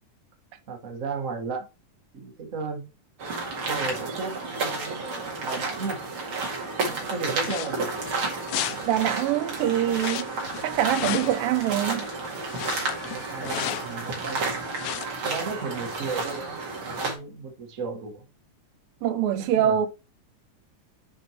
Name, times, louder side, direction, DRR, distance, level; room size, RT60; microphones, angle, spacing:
voice 1, 0.7-1.7 2.1-2.8 3.7-6.0 6.8-8.0 8.7-9.0 9.5-10.0 13.1-14.5 15.2-16.6 17.0-18.2 19.4-19.8, right 4 dB, 65° right, 0.7 m, -35 dB
sound 1, 3.2-17.1, right 3 dB, 45° right, 2.5 m, -31 dB
sound 2, 7.4-14.3 14.6-15.1, left 12 dB, 90° left, 2.4 m, -35 dB
voice 2, 8.8-10.3 10.6-12.1 19.0-19.9, right 11 dB, 85° right, 2.6 m, -24 dB
7.7 x 5.3 x 2.9 m
omnidirectional pair, 3.9 m